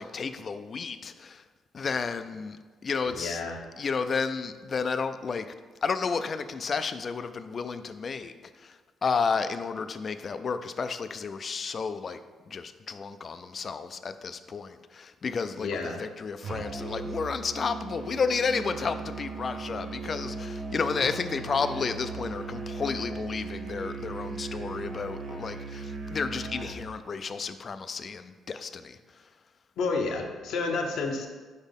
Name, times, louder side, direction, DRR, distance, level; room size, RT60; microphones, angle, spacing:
voice 1, 0.0-1.4 1.7-2.6 2.8-3.4 3.8-5.5 5.8-12.2 12.5-29.2, left 5 dB, 45° left, 10 dB, 0.4 m, -32 dB
voice 2, 3.1-3.6 15.6-16.0 29.8-31.3, left 4 dB, 80° left, 3 dB, 0.8 m, -30 dB
Musical instrument, 16.4-26.8, right 4 dB, 55° right, 0.8 m, -38 dB
5.1 x 4.2 x 5.3 m, 1.4 s
cardioid pair, 90°, 0 cm